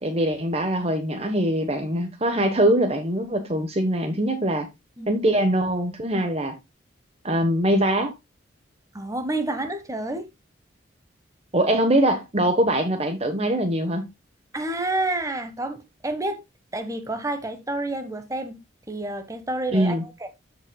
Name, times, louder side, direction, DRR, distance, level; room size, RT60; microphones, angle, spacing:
voice 1, 0.0-4.7 5.1-6.6 7.2-8.2 11.5-14.1 19.7-20.0, right 1 dB, 30° right, 1.1 m, -22 dB
voice 2, 8.9-10.3 14.5-16.4 16.7-18.6 18.9-20.3, right 2 dB, 15° right, 1.3 m, -29 dB
13.5 x 5.5 x 2.3 m
head